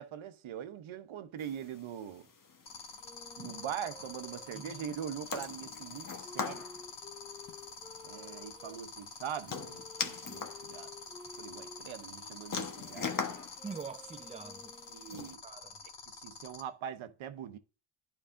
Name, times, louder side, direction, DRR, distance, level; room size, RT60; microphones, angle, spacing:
voice 1, 0.0-2.3 3.4-6.7 8.0-10.9 11.4-13.2 14.9-15.4 16.1-17.6, right 9 dB, 70° right, 0.9 m, -42 dB
sound 1, 1.4-15.3, left 5 dB, 40° left, 1.3 m, -43 dB
sound 2, 2.7-16.6, left 4 dB, 55° left, 1.9 m, -46 dB
sound 3, 3.0-8.8 9.5-15.2, left 3 dB, 10° left, 2.2 m, -54 dB
voice 2, 4.5-5.0 13.6-14.8 15.4-15.8, right 5 dB, 15° right, 0.6 m, -45 dB
11.0 x 5.0 x 2.6 m
cardioid pair, 85°, 49 cm